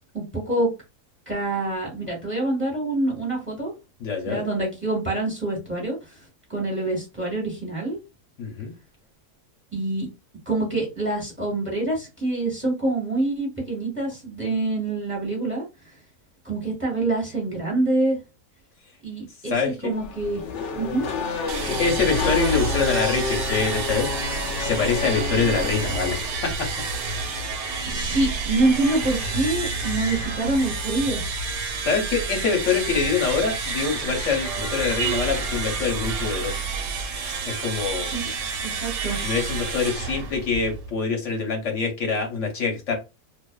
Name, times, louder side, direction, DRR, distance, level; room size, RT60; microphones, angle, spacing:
voice 1, 0.1-0.7 1.3-3.7 4.2-6.2 6.5-8.0 9.7-10.1 10.4-15.6 16.4-18.2 19.0-20.4 20.7-21.1 27.9-31.2 38.0-38.3 38.6-39.2, right 2 dB, 10° right, -3 dB, 1.0 m, -26 dB
voice 2, 4.0-4.4 8.4-8.7 19.5-19.9 21.6-26.7 31.8-36.6 37.5-38.1 39.2-43.0, left 5 dB, 55° left, 2 dB, 0.9 m, -25 dB
Race car auto racing / Accelerating revving vroom, 19.9-26.6, left 5 dB, 85° left, 0.6 m, -30 dB
sound 1, 21.5-40.9, right 4 dB, 90° right, 1.2 m, -29 dB
2.5 x 2.4 x 2.2 m, 0.27 s
omnidirectional pair, 1.8 m